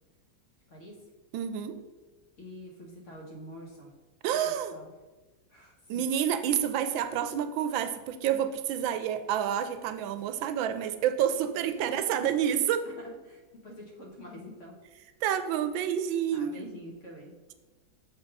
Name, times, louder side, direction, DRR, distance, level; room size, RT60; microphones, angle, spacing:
voice 1, 0.7-1.1 2.4-3.9 4.4-4.9 5.5-6.0 11.8-12.2 12.8-14.8 16.3-17.3, equal, 45° left, -1 dB, 1.3 m, -47 dB
voice 2, 1.3-1.8 4.2-4.7 5.9-12.9 15.2-16.6, right 9 dB, 85° right, 10 dB, 1.3 m, -29 dB
6.8 x 3.6 x 5.3 m, 1.2 s
omnidirectional pair, 2.1 m